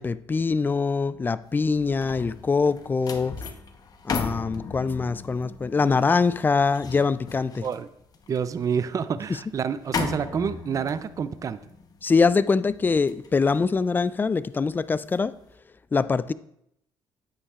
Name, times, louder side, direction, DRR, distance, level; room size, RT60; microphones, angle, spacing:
voice 1, 0.0-3.4 4.1-7.7 12.0-15.3 15.9-16.3, left 4 dB, 20° left, 0.3 m, -23 dB
sound 1, 1.5-14.8 15.2-15.5, left 5 dB, 40° left, 1.0 m, -37 dB
voice 2, 8.3-11.6, right 7 dB, 35° right, 0.5 m, -28 dB
9.8 x 8.5 x 2.4 m
cardioid pair, 90°, 9 cm